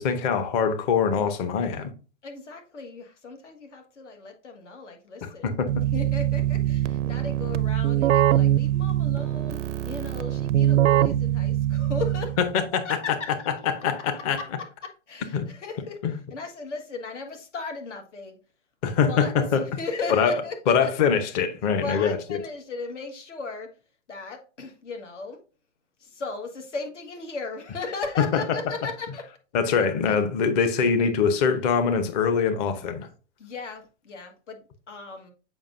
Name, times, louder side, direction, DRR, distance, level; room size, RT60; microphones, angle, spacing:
voice 1, 0.0-1.9 5.4-5.7 12.7-12.8 13.8-14.4 15.3-15.5 16.0-16.1 18.8-19.7 20.1-20.3 20.7-22.4 28.3-28.6 29.5-33.1, left 6 dB, 35° left, 0.8 m, -23 dB
voice 2, 2.2-5.6 5.9-12.4 12.8-13.5 14.2-16.0 16.3-18.4 18.9-19.3 19.7-20.9 21.8-23.7 24.1-25.4 26.0-29.2 30.1-30.2 33.4-35.3, left 4 dB, 80° left, 1.6 m, -36 dB
Keyboard (musical), 5.7-12.5, right 13 dB, 85° right, 0.5 m, -23 dB
7.2 x 5.2 x 2.5 m
hypercardioid pair, 135°, 35 cm